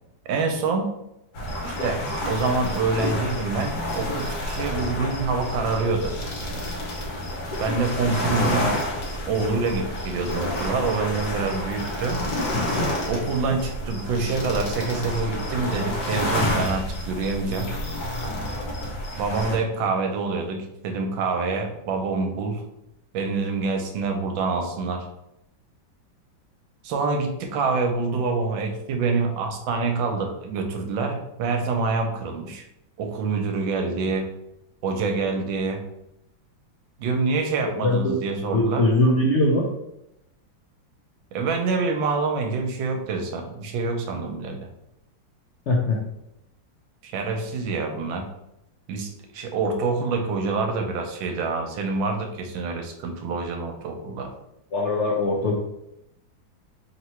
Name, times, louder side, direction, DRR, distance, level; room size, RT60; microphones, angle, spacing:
voice 1, 0.3-0.9 1.6-6.2 6.5-6.7 7.6-8.7 9.3-12.2 13.1-17.7 19.1-22.6 23.1-25.1 26.8-32.6 33.0-34.3 34.8-35.8 37.0-38.9 41.3-44.6 47.0-48.3 48.9-54.3, right 4 dB, 80° right, 4 dB, 1.4 m, -26 dB
sound 1, 1.3-19.6, left 1 dB, 60° left, 1.3 m, -29 dB
voice 2, 37.8-38.2 38.5-39.6 45.7-46.0 54.7-55.5, left 2 dB, 85° left, -1 dB, 0.6 m, -21 dB
3.4 x 2.9 x 4.3 m, 0.84 s
omnidirectional pair, 2.1 m